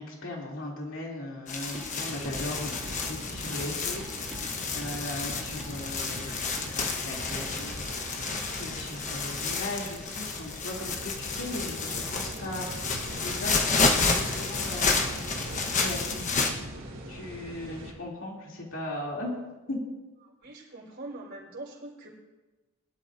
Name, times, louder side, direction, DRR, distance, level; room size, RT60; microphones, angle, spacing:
voice 1, 0.0-12.7 13.1-14.9 15.6-16.4 17.1-19.3 19.7-19.8, left 1 dB, 65° left, -2 dB, 3.0 m, -38 dB
sound 1, 1.5-16.5, left 4 dB, 35° left, 1.2 m, -30 dB
sound 2, 1.7-2.0 2.2-2.4 2.7-3.7 4.0-4.5 4.8-5.0 5.3-5.8 6.1-6.3 6.6-6.7, equal, 5° right, 2.9 m, -46 dB
sound 3, 2.0-17.9, equal, 70° right, 2.7 m, -41 dB
voice 2, 20.4-22.1, right 2 dB, 50° right, -3 dB, 4.2 m, -42 dB
22.0 x 12.0 x 2.7 m, 1.2 s
head